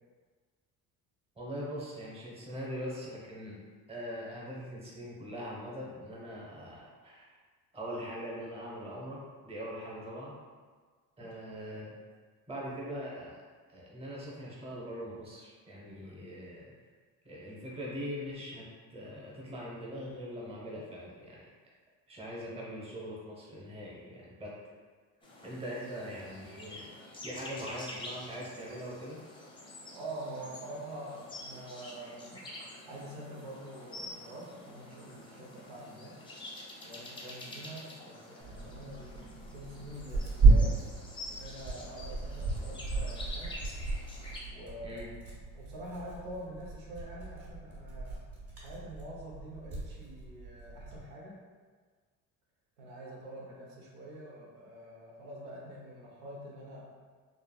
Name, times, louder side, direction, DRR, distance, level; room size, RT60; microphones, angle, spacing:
voice 1, 1.4-3.6 3.9-7.3 7.7-10.4 11.2-12.0 12.5-13.4 13.7-16.7 17.2-21.5 22.1-24.7 25.4-26.9 27.2-29.2 44.8-45.1, equal, 15° right, -5 dB, 0.8 m, -42 dB
sound 1, 25.2-44.4, left 1 dB, 10° left, 0.6 m, -47 dB
voice 2, 29.9-32.4 32.8-36.2 36.8-40.8 41.3-43.5 44.5-45.1 45.5-48.2 48.6-51.4 52.8-56.9, right 1 dB, 85° right, -4 dB, 0.8 m, -45 dB
Tearing, 38.4-51.0, right 3 dB, 35° right, 1.4 m, -32 dB
3.2 x 2.4 x 2.3 m, 1.5 s
supercardioid pair, 80°, 41 cm